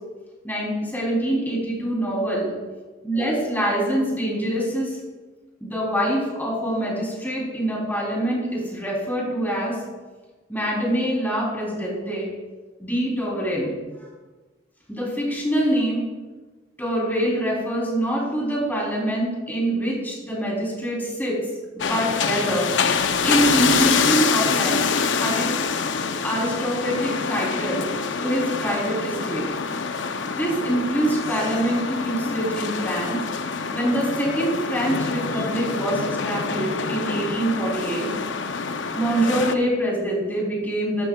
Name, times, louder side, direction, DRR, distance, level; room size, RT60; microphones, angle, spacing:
voice 1, 0.4-2.5 3.0-5.0 5.6-9.8 10.5-12.3 12.8-13.7 14.0-14.1 14.9-16.0 16.8-21.4 21.7-22.7 23.2-24.9 25.2-25.5 26.2-27.9 28.2-29.5 30.3-33.2 33.7-38.1 38.9-41.1, right 1 dB, 10° left, -4 dB, 3.4 m, -25 dB
sound 1, 21.8-39.5, left 5 dB, 75° left, 0.7 m, -26 dB
13.5 x 12.0 x 2.3 m, 1.3 s
head